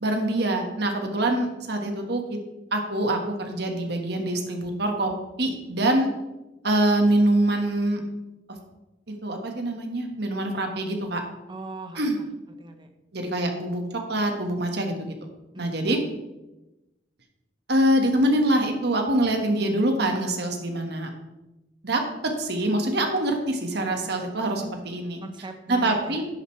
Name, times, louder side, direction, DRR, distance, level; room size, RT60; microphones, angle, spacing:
voice 1, 0.0-2.4 2.7-5.1 5.4-6.1 6.6-8.0 9.1-11.2 11.9-12.2 13.1-13.8 14.1-15.1 15.6-16.0 17.7-21.1 21.8-22.0 22.4-25.2 25.7-26.3, right 1 dB, 65° right, 3 dB, 1.6 m, -24 dB
voice 2, 11.5-12.3 12.6-12.9 15.5-15.9 25.2-26.3, right 2 dB, 25° right, 6 dB, 1.0 m, -40 dB
10.5 x 9.1 x 3.3 m, 0.99 s
head